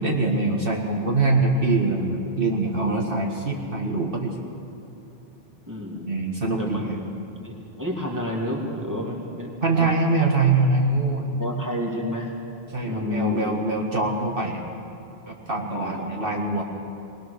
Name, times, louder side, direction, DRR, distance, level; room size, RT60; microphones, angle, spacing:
voice 1, 0.0-4.3 6.1-7.0 9.6-11.3 12.7-14.7 15.3-16.6, right 3 dB, 60° right, 0 dB, 1.9 m, -23 dB
voice 2, 5.7-6.3 6.6-7.0 7.4-9.9 11.4-12.3 12.8-13.6 15.7-16.3, left 1 dB, 15° right, -1 dB, 2.7 m, -30 dB
20.5 x 20.5 x 6.7 m, 3.0 s
omnidirectional pair, 1.1 m